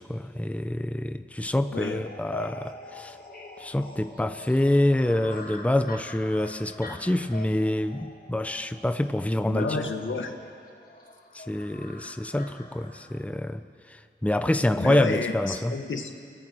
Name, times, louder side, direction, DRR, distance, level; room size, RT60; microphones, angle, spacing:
voice 1, 0.0-3.2 3.6-9.8 11.3-13.6 13.9-15.7, left 1 dB, 5° left, 9 dB, 0.9 m, -26 dB
voice 2, 1.7-2.0 9.5-10.3 14.8-16.1, left 4 dB, 75° left, 4 dB, 2.0 m, -30 dB
sound 1, 1.7-13.2, left 1 dB, 50° left, 4.7 m, -44 dB
29.5 x 18.0 x 6.3 m, 2.3 s
cardioid pair, 50°, 20 cm